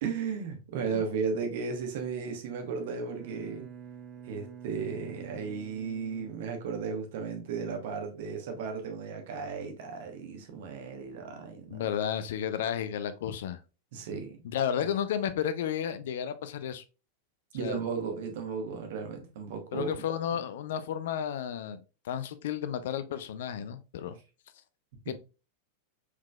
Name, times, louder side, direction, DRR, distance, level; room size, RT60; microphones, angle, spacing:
voice 1, 0.0-3.7 4.2-11.8 13.9-14.4 17.5-19.9 25.0-25.1, right 5 dB, 55° right, 0.9 m, -35 dB
Bowed string instrument, 2.5-7.3, right 8 dB, 35° right, 0.6 m, -48 dB
voice 2, 11.7-13.6 14.4-16.8 17.6-17.8 19.7-24.2 25.1-25.2, left 9 dB, 55° left, 0.4 m, -32 dB
4.5 x 3.7 x 2.2 m
figure-of-eight pair, 90°, 0 cm